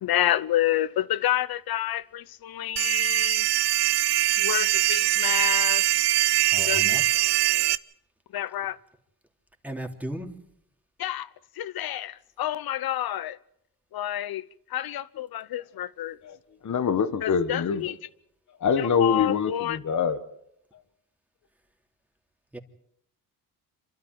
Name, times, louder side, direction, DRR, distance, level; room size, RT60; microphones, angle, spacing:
voice 1, 0.0-3.5 4.4-5.8 6.7-7.0 8.3-8.8 11.0-11.3 11.6-13.4 13.9-14.4 14.7-16.2 17.2-17.9 19.0-19.8, left 12 dB, 60° left, 1.0 m, -29 dB
sound 1, 2.8-7.8, right 14 dB, 75° right, 0.8 m, -22 dB
voice 2, 6.5-7.2 9.6-10.3 22.5-22.6, right 1 dB, 5° right, 3.2 m, -36 dB
voice 3, 16.6-17.9 18.6-20.2, left 6 dB, 45° left, 1.6 m, -25 dB
27.5 x 12.5 x 9.4 m
cardioid pair, 85°, 41 cm